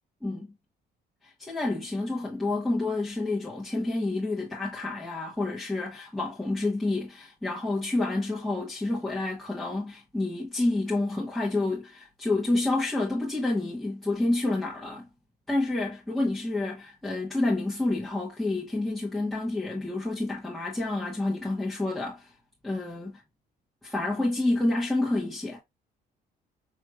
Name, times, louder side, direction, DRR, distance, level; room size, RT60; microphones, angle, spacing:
voice 1, 1.2-15.1 15.5-22.3 22.6-23.2 23.8-25.6, left 2 dB, ahead, 1.1 m, -29 dB
4.8 x 3.1 x 2.3 m
cardioid pair, 110°, 17 cm